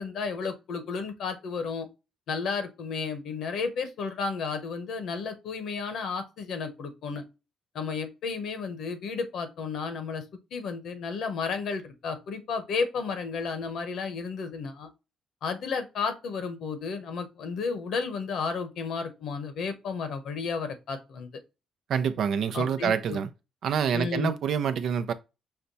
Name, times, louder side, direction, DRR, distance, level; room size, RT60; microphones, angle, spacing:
voice 1, 0.0-1.9 2.3-7.2 7.7-10.2 10.5-14.9 15.4-21.3 22.5-23.2 23.9-24.3, left 5 dB, 75° left, 1.0 m, -32 dB
voice 2, 21.9-23.3 23.6-25.1, right 7 dB, 70° right, 0.6 m, -27 dB
5.7 x 2.2 x 3.9 m
cardioid pair, 90°, 0 cm